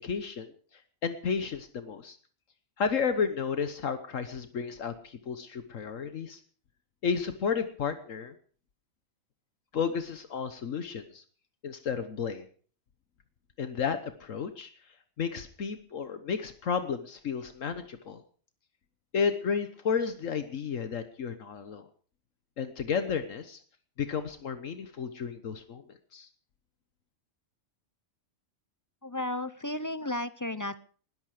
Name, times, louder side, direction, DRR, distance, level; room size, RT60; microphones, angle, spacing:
voice 1, 0.0-2.2 2.8-6.4 7.0-8.3 9.7-11.2 11.6-12.5 13.6-14.7 15.2-18.2 19.1-21.9 22.6-23.6 24.0-25.8 26.1-26.3, left 6 dB, 75° left, 10 dB, 1.5 m, -32 dB
voice 2, 29.0-30.8, left 1 dB, 20° left, 14 dB, 0.5 m, -33 dB
20.0 x 13.5 x 4.9 m, 0.43 s
omnidirectional pair, 1.3 m